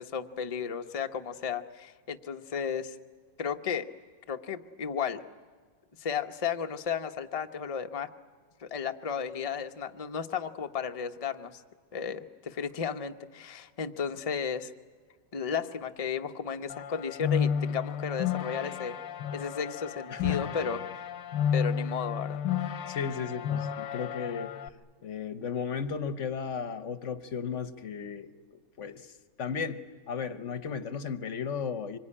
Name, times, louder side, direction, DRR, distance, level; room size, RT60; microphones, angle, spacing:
voice 1, 0.0-3.0 3.4-3.9 4.3-5.2 6.0-8.1 8.6-11.6 11.9-14.7 15.3-18.9 19.3-21.1 21.5-22.4, left 6 dB, 30° left, 6 dB, 0.7 m, -34 dB
sound 1, 16.7-24.7, left 8 dB, 85° left, 1.6 m, -32 dB
voice 2, 20.1-20.6 22.9-24.5 25.0-28.3 28.8-32.0, left 6 dB, 50° left, 12 dB, 1.1 m, -35 dB
25.5 x 22.5 x 9.9 m, 1.5 s
omnidirectional pair, 1.9 m